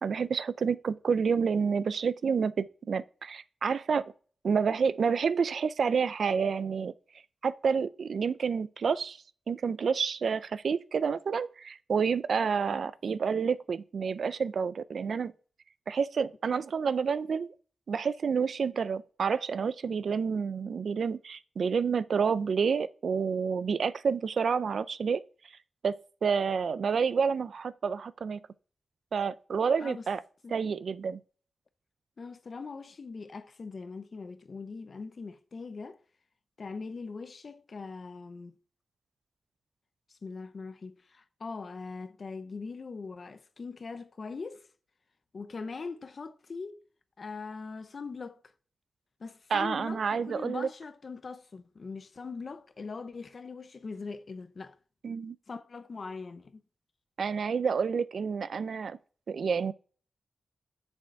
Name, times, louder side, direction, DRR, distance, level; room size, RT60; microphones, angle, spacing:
voice 1, 0.0-4.1 4.4-6.9 7.4-9.2 9.5-15.3 15.9-17.5 17.9-25.2 25.8-25.9 26.2-28.4 29.1-30.2 30.5-31.2 49.5-50.7 55.0-55.4 57.2-59.0 59.3-59.7, right 6 dB, 65° right, 0.4 m, -29 dB
voice 2, 32.2-36.0 36.6-38.5 40.1-44.7 45.3-46.8 47.2-48.4 49.2-54.8 55.5-56.6, left 4 dB, 45° left, 0.6 m, -41 dB
7.7 x 7.0 x 4.5 m
wide cardioid pair, 165°, 0 cm